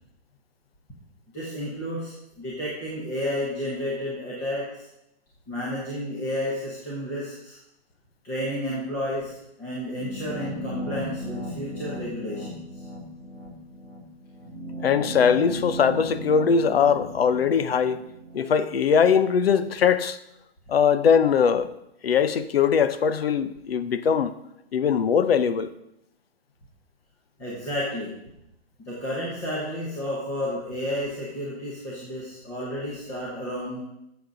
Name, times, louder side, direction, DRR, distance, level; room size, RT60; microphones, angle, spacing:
voice 1, 1.3-4.9 5.5-7.6 8.2-12.6 27.4-28.2 28.8-33.8, left 1 dB, 10° left, 0.9 m, -31 dB
sound 1, 10.0-18.9, equal, 80° left, 3.2 m, -36 dB
voice 2, 14.8-18.0 18.3-20.2 20.7-21.7 22.0-24.3 24.7-25.7, left 7 dB, 60° left, 0.7 m, -21 dB
12.5 x 7.1 x 3.9 m
hypercardioid pair, 175°, 33 cm